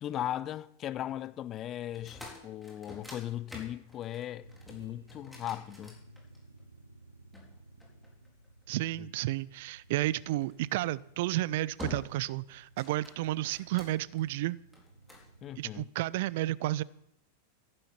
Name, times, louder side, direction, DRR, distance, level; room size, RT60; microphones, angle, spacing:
voice 1, 0.0-6.0 15.4-15.9, left 12 dB, 30° left, 0.6 m, -38 dB
sound 1, 1.9-6.6 7.3-8.6 10.4-10.7 11.2-11.4 11.8-12.3 12.6-14.2 14.7-15.3, left 3 dB, ahead, 3.8 m, -48 dB
sound 2, 4.4-15.7, right 1 dB, 85° right, 1.0 m, -57 dB
voice 2, 8.7-14.6 15.6-16.8, right 16 dB, 50° right, 0.4 m, -32 dB
14.0 x 11.0 x 5.8 m
figure-of-eight pair, 90°, 0 cm